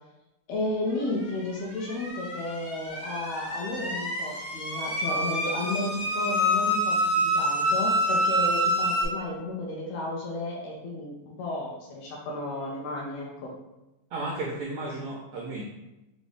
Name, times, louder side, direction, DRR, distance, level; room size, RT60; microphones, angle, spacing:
voice 1, 0.5-13.5, left 2 dB, 75° left, -3 dB, 1.7 m, -33 dB
sound 1, 1.5-9.0, equal, 55° left, 0.9 m, -27 dB
voice 2, 14.1-15.6, right 2 dB, 80° right, -3 dB, 1.4 m, -33 dB
5.2 x 2.5 x 3.3 m, 0.97 s
omnidirectional pair, 3.4 m